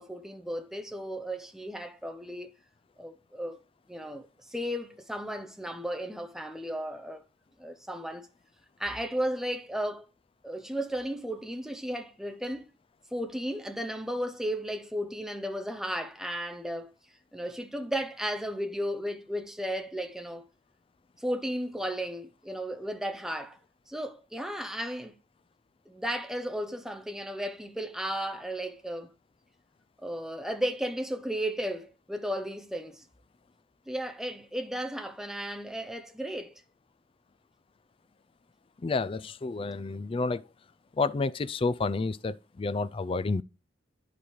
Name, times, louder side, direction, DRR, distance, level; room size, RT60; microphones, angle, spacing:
voice 1, 0.0-2.5 3.0-3.6 3.9-7.2 7.6-8.3 8.8-10.1 10.4-12.7 13.1-16.9 17.3-20.5 21.2-23.6 23.9-25.1 25.9-29.1 30.0-33.0 33.9-36.6, equal, 5° right, 0.7 m, -34 dB
voice 2, 38.8-40.4 41.0-43.4, left 3 dB, 30° left, 0.3 m, -30 dB
11.0 x 5.1 x 3.1 m
head